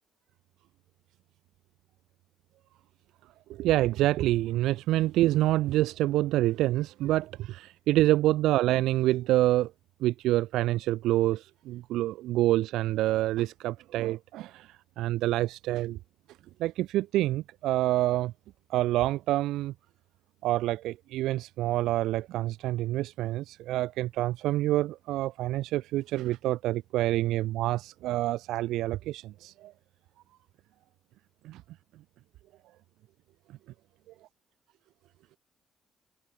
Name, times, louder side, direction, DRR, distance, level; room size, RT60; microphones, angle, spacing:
voice 1, 3.5-9.7 10.0-16.0 16.6-18.3 18.7-19.7 20.4-29.7 31.4-31.6, right 15 dB, 90° right, 1.1 m, -27 dB
cardioid pair, 90°, 0 cm